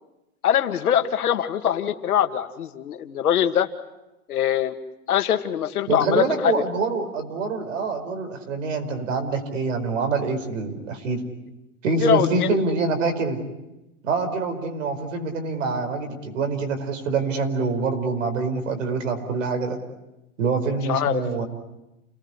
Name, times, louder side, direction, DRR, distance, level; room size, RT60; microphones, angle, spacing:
voice 1, 0.4-3.7 4.3-4.7 5.1-6.6 12.0-12.6 20.9-21.2, left 10 dB, 85° left, 8 dB, 2.3 m, -22 dB
voice 2, 5.9-11.2 11.8-13.4 14.0-19.8 20.4-21.5, right 4 dB, 60° right, 7 dB, 5.1 m, -25 dB
30.0 x 19.5 x 9.8 m, 0.96 s
supercardioid pair, 175°, 43 cm